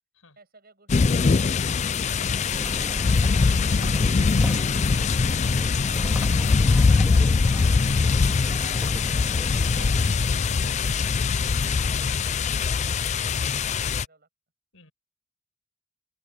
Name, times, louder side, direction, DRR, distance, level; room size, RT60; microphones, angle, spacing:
voice 1, 0.4-2.5 10.1-14.3, right 3 dB, 45° right, 7.6 m, -57 dB
sound 1, 0.9-14.1, left 4 dB, 35° left, 0.4 m, -22 dB
sound 2, 2.5-10.1, equal, 5° right, 3.2 m, -36 dB
voice 2, 9.7-10.6 12.1-12.3 14.7-14.9, left 3 dB, 80° left, 6.0 m, -48 dB
head